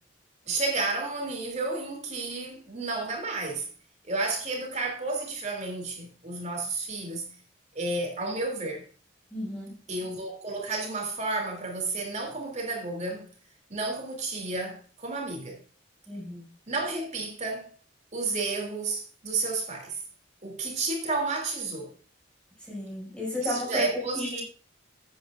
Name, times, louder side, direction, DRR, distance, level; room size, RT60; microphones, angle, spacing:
voice 1, 0.5-3.7 4.0-7.3 7.7-8.9 9.9-13.3 13.7-15.6 16.7-17.7 18.1-20.0 20.4-21.9 23.4-24.4, right 3 dB, 35° right, 2.9 m, -31 dB
voice 2, 9.3-9.8 16.1-16.4 22.7-23.9 24.1-24.4, left 1 dB, 5° left, 6.2 m, -33 dB
13.0 x 8.7 x 2.5 m
head